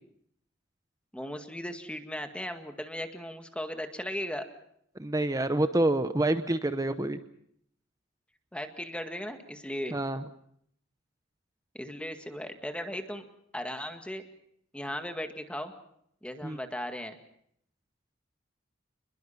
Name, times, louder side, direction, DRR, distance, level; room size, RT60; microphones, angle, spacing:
voice 1, 1.1-4.5 8.5-10.0 11.7-13.2 13.5-14.2 14.7-15.7 16.2-17.2, equal, 5° left, 6 dB, 1.9 m, -37 dB
voice 2, 5.0-7.2 9.9-10.2 16.4-16.6, right 1 dB, 20° right, 10 dB, 0.8 m, -27 dB
28.0 x 21.5 x 5.8 m, 0.69 s
head